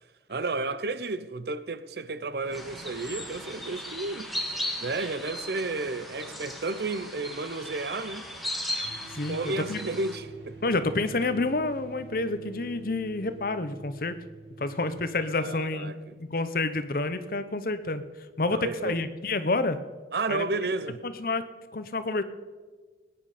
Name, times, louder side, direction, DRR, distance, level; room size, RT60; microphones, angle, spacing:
voice 1, 0.3-4.3 4.8-8.2 9.3-10.6 15.4-16.2 18.4-19.0 20.1-21.0, right 3 dB, 60° right, 0.6 m, -32 dB
sound 1, 2.4-19.4, right 1 dB, 80° right, 2.6 m, -52 dB
sound 2, 2.5-10.2, left 1 dB, ahead, 1.4 m, -37 dB
sound 3, 8.8-15.0, right 3 dB, 40° right, 5.9 m, -46 dB
voice 2, 9.1-9.8 10.6-14.2 14.6-16.0 16.3-18.0 18.4-19.8 20.3-20.4 21.0-22.2, left 3 dB, 50° left, 0.8 m, -29 dB
21.5 x 9.8 x 5.0 m
head